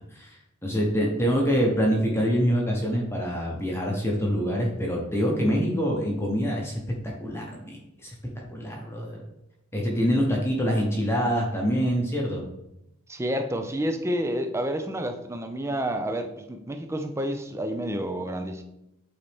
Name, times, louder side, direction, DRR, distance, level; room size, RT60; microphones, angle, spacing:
voice 1, 0.1-6.7 7.0-8.1 8.5-9.2 9.7-12.4, equal, 10° left, -1 dB, 0.9 m, -25 dB
voice 2, 13.1-18.6, equal, 15° right, 7 dB, 0.5 m, -29 dB
8.6 x 4.1 x 3.4 m, 0.86 s
head